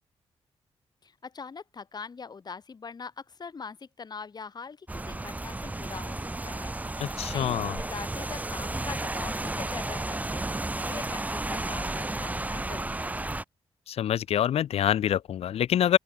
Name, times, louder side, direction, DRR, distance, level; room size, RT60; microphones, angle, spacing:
voice 1, 1.0-13.3, left 5 dB, 40° left, 2.0 m, -43 dB
Rain, 4.9-13.4, right 2 dB, 15° right, 1.1 m, -33 dB
voice 2, 7.0-7.8 13.9-16.0, left 10 dB, 75° left, 0.6 m, -26 dB
open air
cardioid pair, 90°, 10 cm